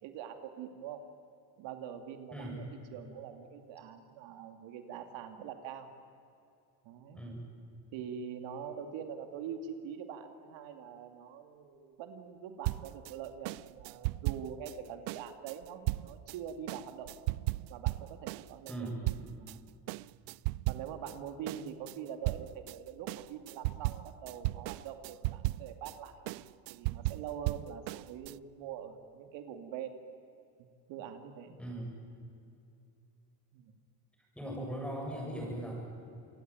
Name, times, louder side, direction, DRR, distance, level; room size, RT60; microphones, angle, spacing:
voice 1, 0.0-1.0 1.6-5.9 6.8-7.2 7.9-17.1 17.7-19.1 19.4-19.7 20.7-26.4 26.7-30.0 30.6-31.6 33.5-33.8, right 8 dB, 70° right, 7 dB, 2.7 m, -44 dB
sound 1, 12.6-19.6 19.9-21.2 21.5-28.4, right 21 dB, 85° right, 0.6 m, -36 dB
voice 2, 18.7-19.0 31.6-31.9 34.3-35.8, right 1 dB, ahead, -1 dB, 7.9 m, -39 dB
27.5 x 22.5 x 9.2 m, 2.6 s
cardioid pair, 145°, 47 cm